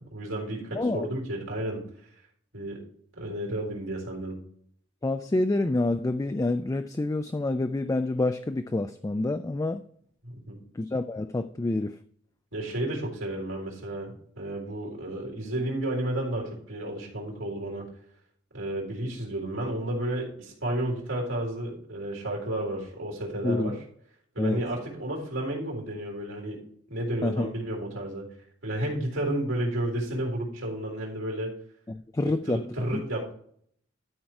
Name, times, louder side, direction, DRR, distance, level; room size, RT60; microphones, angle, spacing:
voice 1, 0.0-1.8 2.5-2.8 3.2-4.4 10.2-10.6 12.5-17.9 18.5-23.8 24.3-26.6 26.9-28.3 28.6-31.5 32.2-33.3, right 1 dB, 90° right, -1 dB, 3.8 m, -32 dB
voice 2, 0.7-1.1 5.0-9.8 10.7-12.0 23.4-23.8 24.4-24.6 27.2-27.5 31.9-32.6 32.9-33.0, left 2 dB, 15° left, 8 dB, 0.3 m, -27 dB
12.5 x 4.6 x 4.7 m, 0.63 s
head